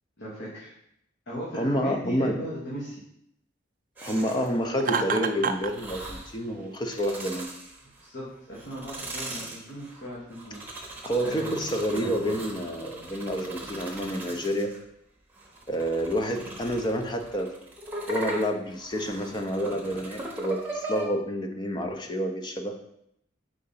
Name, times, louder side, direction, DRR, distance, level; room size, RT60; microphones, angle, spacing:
voice 1, 0.2-0.7 1.3-2.9 8.0-11.5, right 1 dB, 65° left, -7 dB, 1.5 m, -37 dB
voice 2, 1.5-2.4 4.0-7.5 11.0-14.7 15.7-17.5 18.1-22.9, equal, 25° left, 5 dB, 0.6 m, -29 dB
sound 1, 4.0-4.6 5.6-6.4 6.8-8.1 8.5-14.8 15.4-21.1, right 1 dB, 10° right, 0.9 m, -39 dB
Laughter, 4.8-5.7, right 5 dB, 45° right, 0.4 m, -27 dB
4.8 x 3.8 x 5.6 m, 0.76 s
head